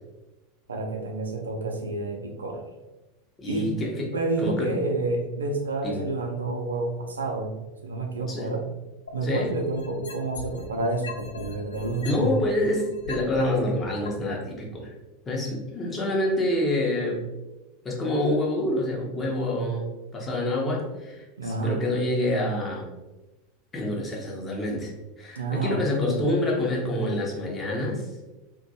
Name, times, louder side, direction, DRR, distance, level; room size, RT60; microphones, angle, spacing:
voice 1, 0.7-2.7 3.5-3.7 4.1-8.7 9.1-12.3 21.4-22.0 25.4-26.3, right 2 dB, 75° right, 2 dB, 0.4 m, -29 dB
voice 2, 3.4-4.1 4.4-4.7 5.8-6.0 8.3-8.5 9.2-9.5 12.0-15.0 15.3-17.2 17.8-22.9 23.7-24.9 25.2-28.1, left 1 dB, 20° left, -2 dB, 0.7 m, -27 dB
sound 1, 9.1-10.7 11.0-13.4 14.1-14.2, left 3 dB, 70° left, 0.3 m, -38 dB
2.5 x 2.2 x 2.6 m, 1.1 s
figure-of-eight pair, 80°, 0 cm